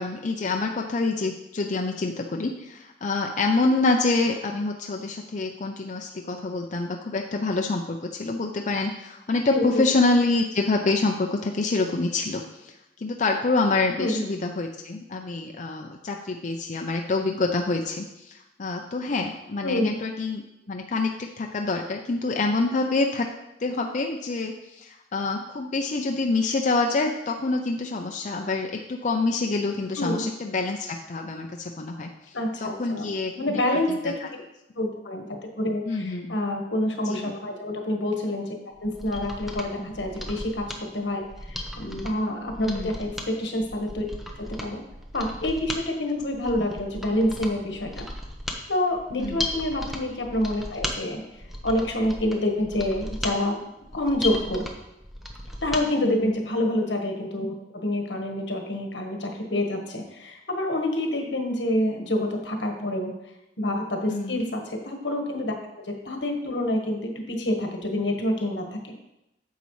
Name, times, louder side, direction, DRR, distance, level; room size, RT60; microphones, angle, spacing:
voice 1, 0.0-12.7 13.0-20.4 20.7-23.3 23.6-32.1 32.6-33.6 33.9-34.0 35.9-36.4 37.1-37.4 39.8-39.9 42.6-42.9 49.2-49.5 56.0-56.3 64.1-64.4, left 3 dB, 45° left, 2 dB, 0.5 m, -26 dB
voice 2, 9.5-9.8 14.0-14.3 19.6-20.0 30.0-30.3 32.3-33.1 33.4-34.2 34.7-44.1 44.4-44.8 45.1-48.0 48.7-51.2 51.6-53.6 53.9-54.6 55.6-63.1 63.6-65.6 65.9-68.9, left 1 dB, 80° left, 2 dB, 1.4 m, -27 dB
Mechanisms, 38.8-55.9 56.2-56.3, left 1 dB, ahead, 0.8 m, -36 dB
9.3 x 6.9 x 3.2 m, 0.89 s
head